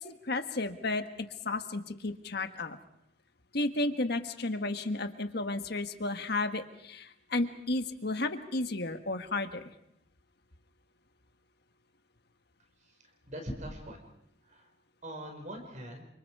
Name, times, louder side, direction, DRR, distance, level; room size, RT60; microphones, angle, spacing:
voice 1, 0.0-2.8 3.5-9.6, left 2 dB, 55° left, 8 dB, 1.6 m, -33 dB
voice 2, 13.3-14.1 14.5-14.7 15.0-16.0, equal, 40° right, 4 dB, 5.2 m, -42 dB
29.5 x 26.5 x 4.9 m, 0.75 s
head